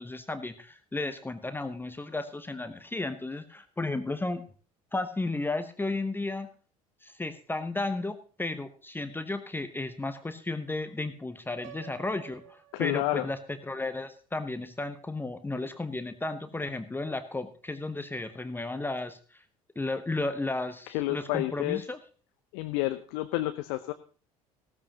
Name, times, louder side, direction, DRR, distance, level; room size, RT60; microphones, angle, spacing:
voice 1, 0.0-4.4 4.9-6.5 7.0-19.4 19.8-22.0, left 2 dB, 10° left, 10 dB, 0.9 m, -34 dB
Piano, 11.6-13.6, right 11 dB, 55° right, 0.9 m, -51 dB
voice 2, 12.7-13.3 20.9-21.8 22.5-23.9, left 17 dB, 60° left, 8 dB, 0.8 m, -30 dB
15.5 x 13.5 x 2.9 m, 0.38 s
figure-of-eight pair, 60°, 19 cm